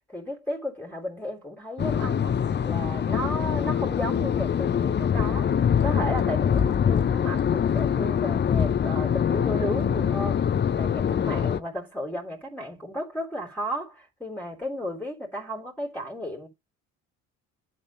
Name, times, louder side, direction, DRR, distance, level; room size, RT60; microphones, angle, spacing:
voice 1, 0.1-2.4 2.6-5.5 5.8-10.4 10.7-16.5, equal, 5° left, 3.3 m, -34 dB
sound 1, 1.8-11.6, left 8 dB, 25° left, 0.6 m, -24 dB
11.0 x 4.4 x 3.0 m
hypercardioid pair, 50°, 42 cm